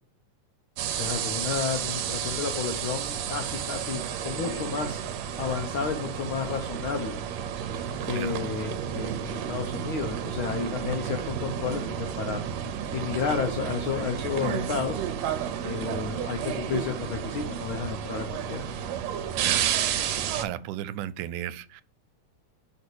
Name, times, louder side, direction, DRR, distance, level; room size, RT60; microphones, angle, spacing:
sound 1, 0.8-20.4, right 9 dB, 75° right, 1.7 m, -31 dB
voice 1, 0.9-5.0 5.4-7.2 8.1-12.4 12.9-15.0 15.6-18.7, left 6 dB, 80° left, 1.1 m, -31 dB
voice 2, 8.1-8.4 19.4-19.7 20.1-21.8, right 12 dB, 90° right, 2.1 m, -35 dB
5.6 x 4.4 x 6.1 m
omnidirectional pair, 3.5 m